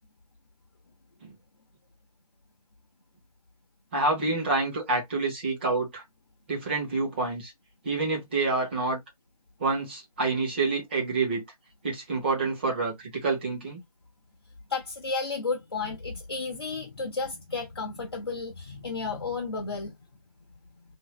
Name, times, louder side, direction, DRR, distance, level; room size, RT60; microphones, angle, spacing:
voice 1, 3.9-6.0 6.5-7.5 7.8-9.0 9.6-11.4 11.8-12.9 13.2-13.8, right 3 dB, 15° right, 1.1 m, -27 dB
voice 2, 14.7-19.9, left 4 dB, 40° left, 0.8 m, -32 dB
2.7 x 2.7 x 3.1 m
figure-of-eight pair, 165°, 20 cm